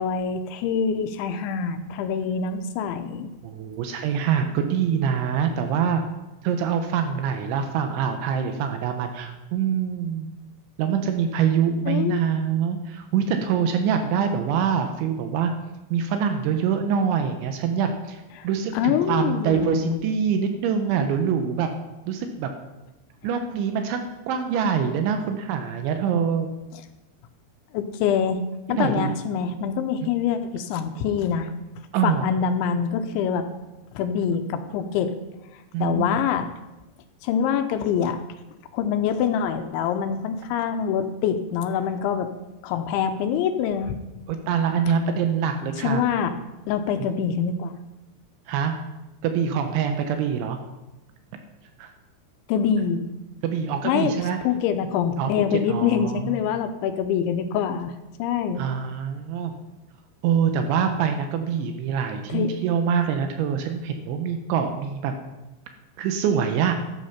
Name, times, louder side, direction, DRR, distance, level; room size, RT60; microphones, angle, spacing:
voice 1, 0.0-3.3 11.9-12.2 18.4-18.5 18.7-20.1 26.7-26.8 27.7-28.4 28.7-31.5 32.0-33.5 33.9-35.1 35.8-36.5 37.2-38.2 38.7-42.3 42.6-43.9 45.8-46.3 46.7-47.7 52.5-53.0 53.8-54.1 54.4-57.9 58.2-58.6 62.3-62.5, left 7 dB, 80° left, 7 dB, 3.1 m, -25 dB
voice 2, 3.4-6.0 6.4-10.3 10.8-15.5 15.9-21.7 22.1-22.5 23.2-26.5 28.7-29.2 31.9-32.3 35.7-36.1 44.3-46.0 48.5-48.7 49.2-50.6 51.8-51.9 53.4-54.4 55.2-56.4 58.6-59.5 60.2-65.1 66.0-66.7, right 7 dB, 80° right, 6 dB, 3.2 m, -25 dB
13.0 x 8.6 x 5.8 m, 1.0 s
omnidirectional pair, 5.3 m